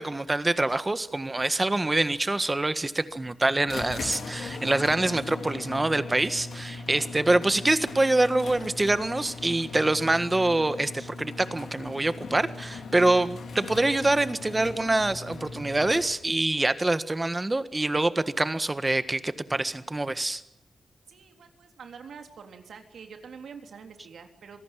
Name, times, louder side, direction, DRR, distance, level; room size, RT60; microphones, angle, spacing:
voice 1, 0.0-20.4, right 2 dB, 20° right, 12 dB, 1.6 m, -25 dB
sound 1, 3.7-16.5, left 3 dB, 80° left, 3.8 m, -39 dB
voice 2, 21.1-24.6, right 6 dB, 85° right, 5 dB, 3.5 m, -46 dB
26.0 x 18.5 x 9.2 m, 0.81 s
wide cardioid pair, 100°, 0 cm